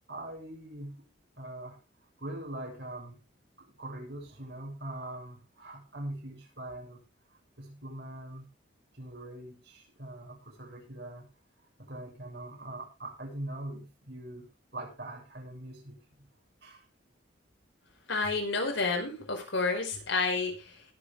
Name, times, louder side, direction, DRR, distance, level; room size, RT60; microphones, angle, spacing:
voice 1, 0.1-1.0 1.4-1.8 2.2-3.2 3.8-7.0 7.6-8.5 8.9-11.3 11.8-16.3 16.6-16.9, right 1 dB, 60° right, 0 dB, 6.9 m, -42 dB
voice 2, 18.1-20.8, left 3 dB, 85° left, 2 dB, 5.0 m, -30 dB
20.5 x 8.0 x 3.6 m, 0.29 s
head